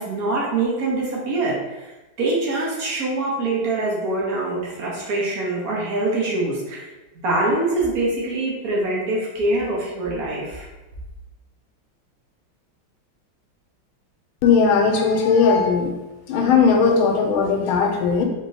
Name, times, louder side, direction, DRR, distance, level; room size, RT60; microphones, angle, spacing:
voice 1, 0.0-1.9 2.2-6.9 7.2-10.7, right 2 dB, 55° right, -4 dB, 1.2 m, -24 dB
voice 2, 14.4-15.9 16.3-18.2, left 5 dB, 90° left, 3 dB, 1.4 m, -18 dB
3.6 x 3.6 x 2.7 m, 1.1 s
omnidirectional pair, 2.2 m